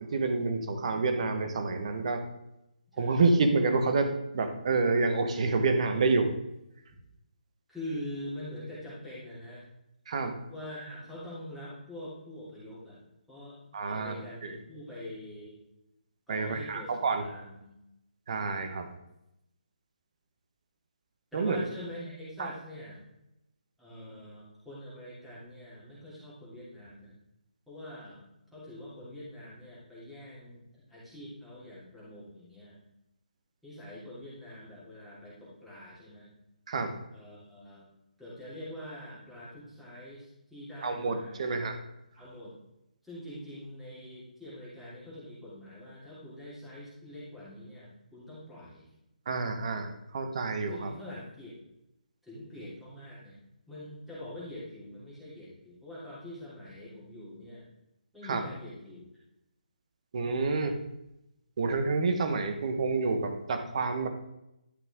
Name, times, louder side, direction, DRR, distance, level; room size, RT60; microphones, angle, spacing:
voice 1, 0.0-2.2 3.0-6.3 10.1-10.3 13.7-14.2 14.4-14.5 16.3-17.2 18.3-18.9 21.3-21.6 22.4-22.5 36.7-36.9 40.8-41.8 49.3-50.9 58.2-58.4 60.1-60.8 61.6-64.1, right 3 dB, 50° right, 7 dB, 1.3 m, -28 dB
voice 2, 7.7-9.6 10.5-13.0 13.3-13.6 13.8-15.6 16.3-16.9 17.2-17.7 21.3-23.0 23.8-27.1 27.7-28.2 28.5-32.8 33.6-36.3 37.1-37.8 38.2-41.5 42.1-42.5 43.0-48.9 50.7-51.5 52.2-53.3 53.7-57.6 58.1-59.1, left 1 dB, ahead, -10 dB, 3.3 m, -44 dB
11.5 x 5.8 x 3.7 m, 0.87 s
figure-of-eight pair, 155°, 5 cm